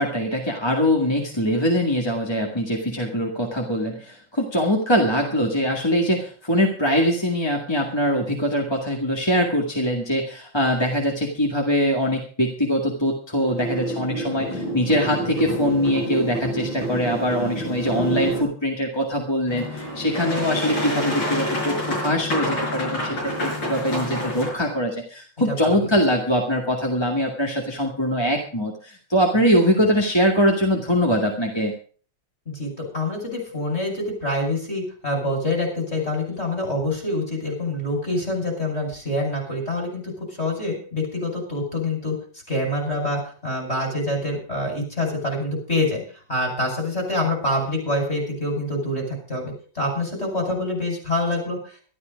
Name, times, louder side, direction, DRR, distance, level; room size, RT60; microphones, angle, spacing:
voice 1, 0.0-31.7, equal, 15° left, 0 dB, 2.0 m, -22 dB
sound 1, 13.4-18.4, right 2 dB, 85° left, 7.1 m, -28 dB
Boat Water vehicle, 19.5-24.5, left 1 dB, 70° left, 6.4 m, -27 dB
voice 2, 25.5-25.9 32.5-42.1 42.5-46.0 46.3-51.7, left 1 dB, 30° left, 2 dB, 6.0 m, -26 dB
13.0 x 12.5 x 5.2 m, 0.42 s
omnidirectional pair, 2.1 m